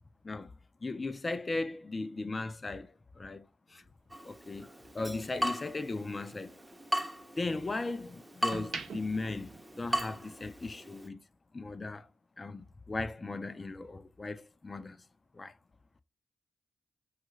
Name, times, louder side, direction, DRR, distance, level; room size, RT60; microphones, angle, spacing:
voice 1, 0.8-3.8 4.2-4.7 4.9-6.6 7.4-11.2 11.5-12.1 12.4-15.0 15.3-15.5, left 3 dB, 35° left, 0.5 m, -37 dB
sound 1, 3.7-6.0 6.4-7.8 8.3-10.4 10.7-11.0, right 4 dB, 70° right, 0.7 m, -46 dB
Water tap faucet / Drip, 4.1-11.1, equal, 15° right, 0.7 m, -38 dB
3.0 x 2.4 x 3.1 m
supercardioid pair, 50°, 0 cm